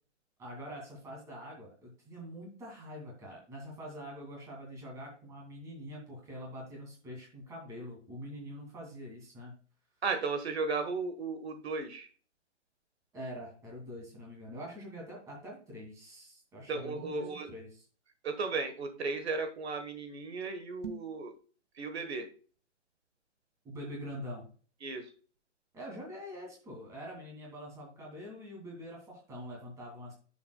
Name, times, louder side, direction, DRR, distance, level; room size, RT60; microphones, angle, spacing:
voice 1, 0.4-9.5 13.1-17.8 23.6-24.5 25.7-30.1, equal, 10° right, -1 dB, 2.4 m, -44 dB
voice 2, 10.0-12.1 16.7-17.5 18.2-21.3 21.8-22.3 24.8-25.0, right 4 dB, 60° right, 7 dB, 1.5 m, -35 dB
sound 1, 20.7-21.2, right 6 dB, 90° right, 1.7 m, -43 dB
10.5 x 7.0 x 2.3 m, 0.38 s
hypercardioid pair, 170°, 37 cm